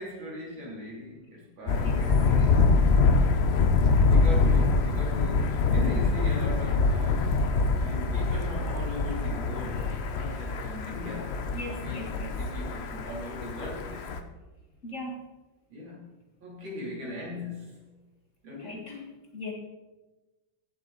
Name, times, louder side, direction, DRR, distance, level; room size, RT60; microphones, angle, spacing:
voice 1, 0.0-2.8 4.1-7.4 7.8-11.3 11.8-14.1 15.7-16.0 16.4-17.8 18.4-19.2, left 1 dB, 75° right, -4 dB, 4.0 m, -39 dB
Thunder, 1.7-14.2, left 4 dB, 65° left, 0.6 m, -25 dB
voice 2, 11.5-12.3 14.8-15.2 18.6-19.0 19.3-19.5, left 1 dB, 40° left, 0 dB, 1.9 m, -38 dB
16.0 x 7.5 x 4.0 m, 1.1 s
omnidirectional pair, 2.1 m